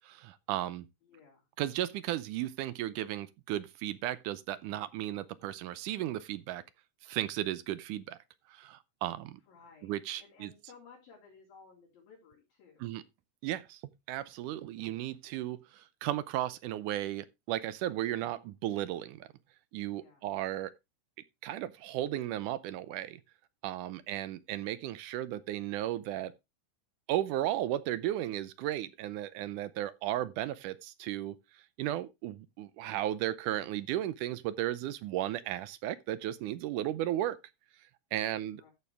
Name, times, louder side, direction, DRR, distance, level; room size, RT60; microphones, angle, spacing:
voice 1, 0.1-0.9 1.6-6.6 7.0-8.2 8.5-9.4 9.8-10.5 12.8-13.0 13.4-13.8 14.1-19.3 19.7-20.7 21.4-23.2 23.6-26.3 27.1-31.4 31.8-37.4 38.1-38.6, right 13 dB, 75° right, 2.0 m, -35 dB
voice 2, 1.0-1.5 9.5-12.8 19.9-20.3 38.1-38.7, left 5 dB, 90° left, 5.8 m, -58 dB
13.5 x 6.9 x 3.4 m
omnidirectional pair, 4.0 m